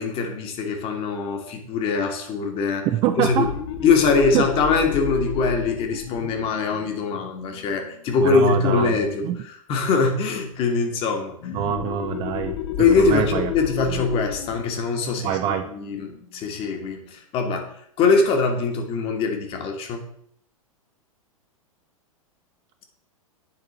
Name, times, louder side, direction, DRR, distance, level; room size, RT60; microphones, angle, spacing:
voice 1, 0.0-2.9 3.2-3.5 3.8-9.2 9.7-11.5 12.8-17.7 18.0-20.0, left 4 dB, 30° left, 4 dB, 1.2 m, -22 dB
voice 2, 2.8-3.5 4.1-4.5 8.2-9.4 11.5-13.5 13.9-14.0 15.2-15.7, right 11 dB, 25° right, 8 dB, 0.4 m, -25 dB
sound 1, 3.1-8.4 11.4-16.7, left 8 dB, 50° left, 0.7 m, -32 dB
9.9 x 3.6 x 4.1 m, 0.67 s
figure-of-eight pair, 100°, 18 cm